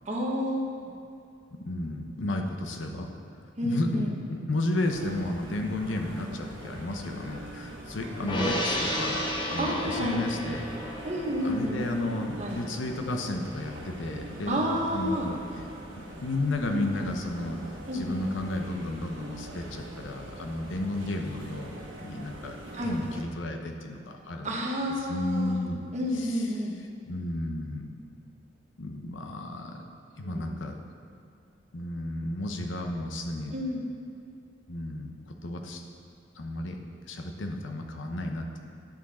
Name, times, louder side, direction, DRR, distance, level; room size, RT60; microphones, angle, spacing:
voice 1, 0.1-0.9 3.6-4.1 8.2-8.6 9.6-10.2 11.0-11.8 12.4-12.6 14.5-15.3 16.7-17.1 17.9-18.3 22.7-23.0 24.4-25.6 25.9-26.7 30.3-30.6 33.5-33.8, equal, 40° right, -1 dB, 1.1 m, -30 dB
voice 2, 1.5-3.1 3.6-11.0 11.4-15.4 16.0-17.6 17.9-21.7 22.0-24.6 25.1-25.8 26.1-26.5 27.1-27.9 28.8-29.8 30.2-30.8 31.7-33.5 34.7-35.8 36.4-38.6, left 2 dB, 80° left, 3 dB, 0.8 m, -33 dB
sound 1, 4.8-23.2, right 1 dB, 85° right, 1.3 m, -43 dB
Gong, 8.3-14.9 15.2-15.4, equal, 25° left, 1.0 m, -34 dB
10.0 x 6.2 x 4.2 m, 2.5 s
head